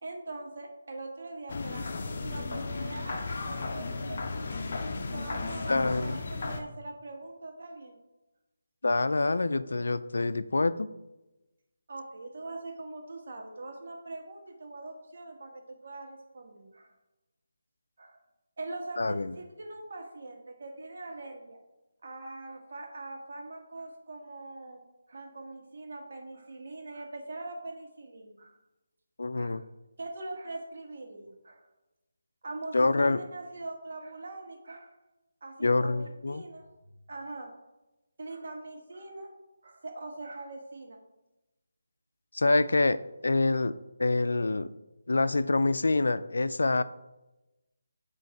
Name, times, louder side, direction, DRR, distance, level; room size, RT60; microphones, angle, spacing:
voice 1, 0.0-4.5 5.1-8.0 11.9-16.9 18.0-18.2 18.6-21.6 22.0-24.8 25.1-28.6 29.3-29.6 30.0-31.7 32.4-34.9 35.4-36.7 37.1-37.5 38.2-39.3 39.6-41.0, right 2 dB, 55° right, 1 dB, 1.7 m, -42 dB
sound 1, 1.5-6.6, left 3 dB, 50° left, 0.8 m, -35 dB
voice 2, 5.7-6.2 8.8-10.9 19.0-19.3 29.2-29.6 32.7-33.2 35.6-36.4 42.3-43.7 44.0-44.7 45.1-46.8, left 2 dB, 75° left, 14 dB, 0.4 m, -26 dB
7.6 x 3.1 x 5.9 m, 1.0 s
figure-of-eight pair, 160°, 0 cm